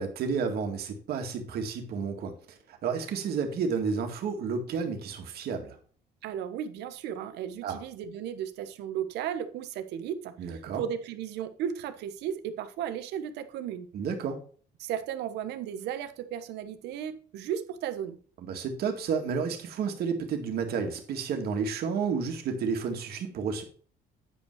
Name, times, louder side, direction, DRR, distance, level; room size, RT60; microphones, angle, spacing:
voice 1, 0.0-5.8 7.6-7.8 10.4-10.8 13.9-14.4 18.5-23.6, right 5 dB, 65° right, 4 dB, 2.0 m, -31 dB
voice 2, 6.2-13.9 14.8-18.2, right 9 dB, 80° right, 10 dB, 1.1 m, -35 dB
9.1 x 5.5 x 4.7 m, 0.43 s
cardioid pair, 110°, 17 cm